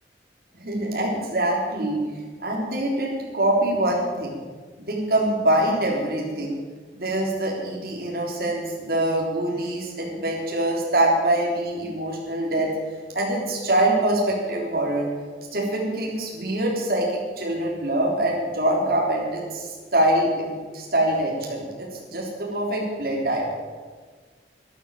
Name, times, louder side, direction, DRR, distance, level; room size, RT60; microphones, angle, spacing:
voice 1, 0.5-2.0 2.4-4.4 4.8-6.5 6.9-12.7 13.1-15.1 15.5-17.1 17.4-23.4, right 1 dB, 55° right, -3 dB, 3.5 m, -24 dB
12.5 x 11.5 x 8.7 m, 1.5 s
head